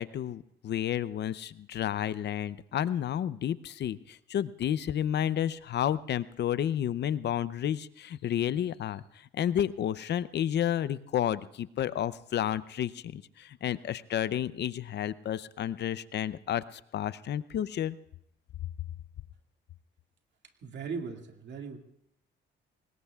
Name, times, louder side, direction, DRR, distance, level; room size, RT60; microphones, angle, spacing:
voice 1, 0.0-18.0, left 10 dB, 60° left, 16 dB, 0.6 m, -31 dB
voice 2, 20.6-21.8, right 5 dB, 65° right, 3 dB, 2.2 m, -38 dB
24.5 x 20.5 x 2.4 m, 0.74 s
cardioid pair, 90°, 20 cm